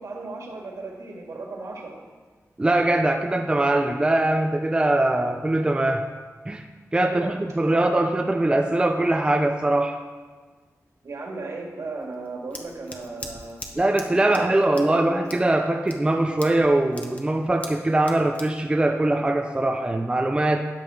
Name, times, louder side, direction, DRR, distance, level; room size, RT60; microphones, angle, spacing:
voice 1, 0.0-2.0 7.0-8.0 11.0-13.6 14.1-15.1, right 3 dB, 70° right, -1 dB, 2.3 m, -36 dB
voice 2, 2.6-6.1 6.5-6.6 6.9-10.0 13.8-20.6, right 1 dB, 15° right, 4 dB, 0.5 m, -22 dB
Scissors, 12.0-19.8, left 1 dB, 25° left, 1.3 m, -43 dB
13.5 x 9.0 x 3.8 m, 1.4 s
wide cardioid pair, 125°, 6 cm